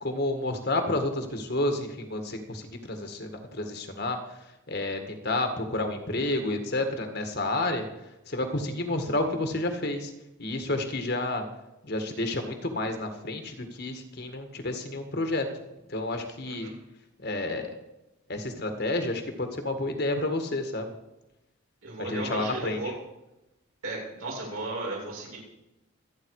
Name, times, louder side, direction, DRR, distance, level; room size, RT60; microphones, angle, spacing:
voice 1, 0.0-4.2 4.7-7.9 8.3-10.1 10.4-11.4 11.8-15.5 15.9-16.7 17.2-17.7 18.3-20.9 22.0-22.9, left 2 dB, 50° left, 5 dB, 1.8 m, -30 dB
voice 2, 21.8-23.0 23.8-25.4, right 2 dB, 80° right, -3 dB, 7.4 m, -35 dB
26.0 x 9.5 x 4.9 m, 0.95 s
head